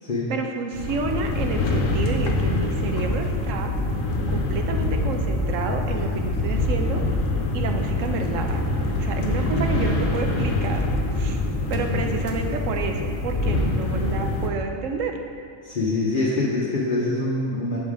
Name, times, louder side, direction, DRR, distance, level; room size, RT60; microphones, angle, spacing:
voice 1, 0.3-3.7 4.3-7.0 7.5-8.7 9.0-10.9 11.2-11.4 11.7-15.2, right 4 dB, 70° right, 4 dB, 1.0 m, -30 dB
sound 1, 0.7-14.5, left 2 dB, 75° left, 1.1 m, -25 dB
voice 2, 11.7-12.0 12.3-12.6 15.6-17.8, left 2 dB, 45° left, -5 dB, 0.9 m, -26 dB
6.2 x 5.5 x 4.9 m, 2.4 s
omnidirectional pair, 1.4 m